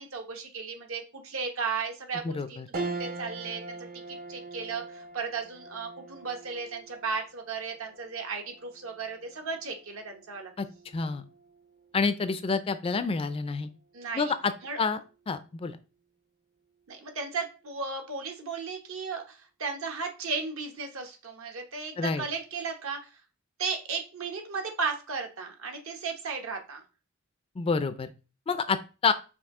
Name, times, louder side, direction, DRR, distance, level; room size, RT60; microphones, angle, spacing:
voice 1, 0.0-3.8 4.1-10.5 13.9-14.3 14.6-14.8 16.9-23.0 23.6-26.8, right 4 dB, 70° right, 4 dB, 0.9 m, -35 dB
voice 2, 2.2-2.7 10.6-10.7 10.9-11.2 11.9-13.7 14.1-14.5 14.8-15.0 15.3-15.8 22.0-22.2 27.6-28.1 28.5-29.1, left 4 dB, 25° left, 12 dB, 0.3 m, -28 dB
sound 1, 2.7-12.3 12.8-12.9 14.2-14.7, right 3 dB, 45° right, 0.6 m, -42 dB
5.4 x 2.7 x 3.6 m, 0.33 s
head